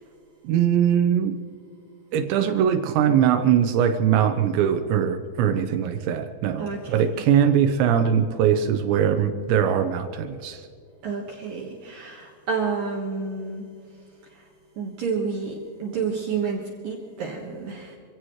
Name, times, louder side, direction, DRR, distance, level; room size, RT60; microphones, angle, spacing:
voice 1, 0.4-1.4 2.1-10.7, right 9 dB, 80° right, 8 dB, 2.6 m, -21 dB
voice 2, 6.6-7.3 11.0-13.6 14.8-18.0, right 5 dB, 65° right, 0 dB, 2.3 m, -30 dB
26.5 x 16.5 x 3.2 m, 2.3 s
omnidirectional pair, 6.0 m